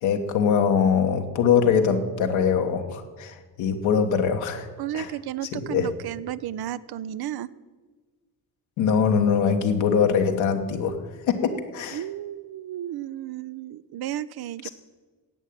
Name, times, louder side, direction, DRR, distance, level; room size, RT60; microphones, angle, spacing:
voice 1, 0.0-4.7 4.9-5.1 5.5-5.9 8.8-11.0 11.3-12.0 14.6-14.7, left 6 dB, 75° left, 4 dB, 1.4 m, -22 dB
voice 2, 4.8-7.5 11.9-14.7, right 12 dB, 55° right, 18 dB, 0.7 m, -33 dB
11.0 x 8.4 x 9.1 m, 1.4 s
hypercardioid pair, 40°, 47 cm